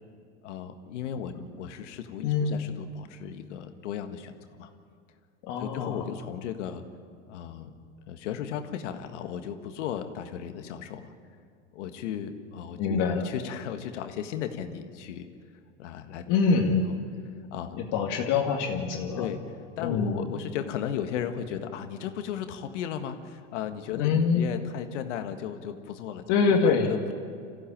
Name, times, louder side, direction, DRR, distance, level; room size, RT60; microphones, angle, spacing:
voice 1, 0.4-4.7 5.6-6.8 7.3-7.8 8.1-11.1 11.7-15.3 15.8-16.4 17.5-17.8 19.2-19.4 19.8-26.2 26.5-26.6 26.9-27.1, left 9 dB, 75° left, 7 dB, 1.7 m, -35 dB
voice 2, 2.2-2.6 5.5-6.0 12.8-13.3 16.3-16.9 17.8-19.3 19.8-20.2 24.0-24.4 26.3-26.9, left 5 dB, 55° left, 1 dB, 2.2 m, -25 dB
25.0 x 15.5 x 8.8 m, 2.3 s
hypercardioid pair, 105°, 37 cm